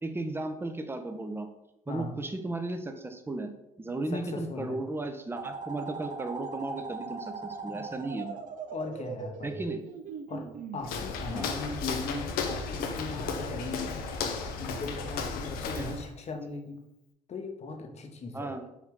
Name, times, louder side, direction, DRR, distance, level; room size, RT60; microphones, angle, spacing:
voice 1, 0.0-1.5 1.9-3.5 3.8-8.4 9.4-9.8 11.3-11.5 15.7-15.9 18.3-18.6, right 2 dB, 15° right, 7 dB, 0.6 m, -35 dB
voice 2, 4.1-4.8 8.7-9.6 10.3-14.0 14.6-16.8 17.3-18.6, left 3 dB, 45° left, 4 dB, 0.9 m, -38 dB
sound 1, 5.4-10.8, right 5 dB, 55° right, 0.5 m, -40 dB
Walk footsteps, 10.8-16.1, left 5 dB, 75° left, 0.6 m, -34 dB
4.7 x 2.8 x 3.6 m, 0.86 s
supercardioid pair, 65°, 16 cm